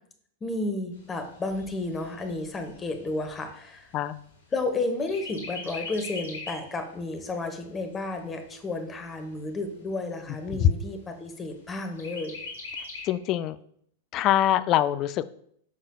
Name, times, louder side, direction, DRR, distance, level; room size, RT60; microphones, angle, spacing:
voice 1, 0.4-3.9 4.5-12.4, left 2 dB, 20° left, 6 dB, 1.0 m, -32 dB
Chirp tweet, 0.9-4.7 5.1-6.7 7.2-7.3 7.6-8.6 9.2-9.3 9.7-9.8 10.2-10.7 12.0-13.1, left 3 dB, 65° left, 1.6 m, -41 dB
voice 2, 13.0-13.6 14.1-15.2, left 11 dB, 35° left, 16 dB, 0.3 m, -23 dB
9.4 x 5.6 x 2.3 m, 0.67 s
figure-of-eight pair, 95°, 0 cm